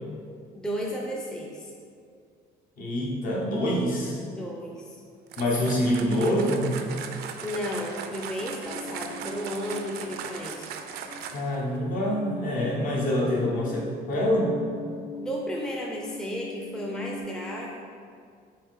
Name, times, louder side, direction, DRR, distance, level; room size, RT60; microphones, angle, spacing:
voice 1, 0.5-1.7 4.3-5.0 7.4-10.8 15.1-17.8, equal, 5° left, -2 dB, 0.4 m, -33 dB
voice 2, 2.8-4.2 5.4-6.8 11.3-14.6, equal, 55° left, -3 dB, 1.1 m, -26 dB
sound 1, 5.3-11.6, right 7 dB, 70° right, 0.4 m, -38 dB
sound 2, 8.4-10.5 10.8-17.2, left 2 dB, 85° left, 1.1 m, -42 dB
4.6 x 3.1 x 3.6 m, 2.2 s
cardioid pair, 110°, 17 cm